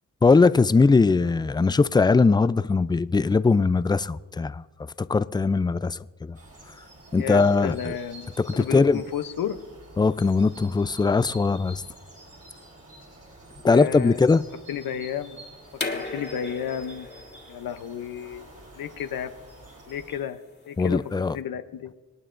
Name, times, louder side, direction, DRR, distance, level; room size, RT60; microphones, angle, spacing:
voice 1, 0.2-4.6 5.0-6.4 7.1-7.9 8.4-9.0 10.0-11.8 13.6-14.4 20.8-21.4, left 4 dB, 15° left, 0.3 m, -20 dB
sound 1, 6.3-20.2, right 1 dB, 45° right, 4.0 m, -48 dB
voice 2, 7.1-9.6 13.6-14.2 14.7-15.4 15.9-17.1 17.5-18.5 18.7-19.3 19.9-20.4 20.7-21.0 21.3-21.9, left 9 dB, 85° left, 0.7 m, -32 dB
sound 2, 15.7-21.3, left 3 dB, 30° left, 1.8 m, -38 dB
26.5 x 9.1 x 2.5 m
cardioid pair, 70°, 34 cm